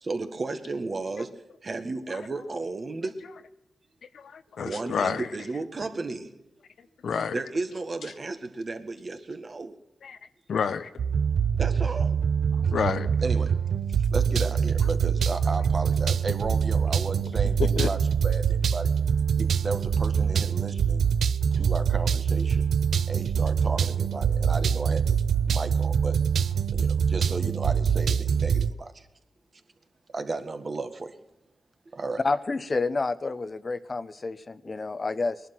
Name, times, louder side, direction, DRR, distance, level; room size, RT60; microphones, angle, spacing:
voice 1, 0.0-3.5 4.6-6.4 7.3-9.8 11.6-12.2 13.2-13.7 14.0-18.9 19.4-21.1 21.5-22.7 23.1-25.2 25.5-26.2 26.7-29.1 30.1-31.2 31.9-32.2, right 3 dB, 50° right, 1.7 m, -34 dB
voice 2, 4.1-5.3 7.0-7.4 10.0-10.2 10.5-10.9 12.6-13.1 17.7-17.9, left 6 dB, 80° left, 0.9 m, -29 dB
sound 1, 11.0-28.7, right 7 dB, 80° right, 0.5 m, -24 dB
voice 3, 32.2-35.4, left 3 dB, 45° left, 0.8 m, -29 dB
19.0 x 11.5 x 6.1 m
cardioid pair, 55°, 0 cm